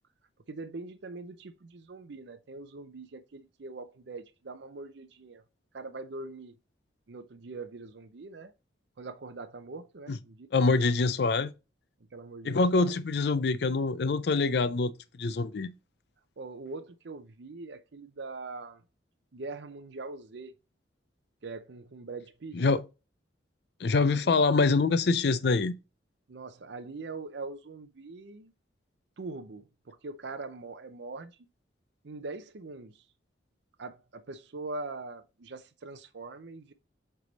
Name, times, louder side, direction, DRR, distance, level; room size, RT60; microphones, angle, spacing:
voice 1, 0.5-5.4 5.7-6.5 7.1-8.5 9.0-10.5 12.1-13.0 16.4-18.8 19.3-20.5 21.4-22.6 23.9-24.4 26.3-28.5 29.2-31.5 32.0-33.1 33.8-36.7, right 3 dB, 65° right, 0.6 m, -42 dB
voice 2, 10.5-11.5 12.4-14.9 15.2-15.7 22.5-22.8 23.8-25.7, left 3 dB, 55° left, 0.4 m, -25 dB
8.0 x 3.4 x 4.0 m
head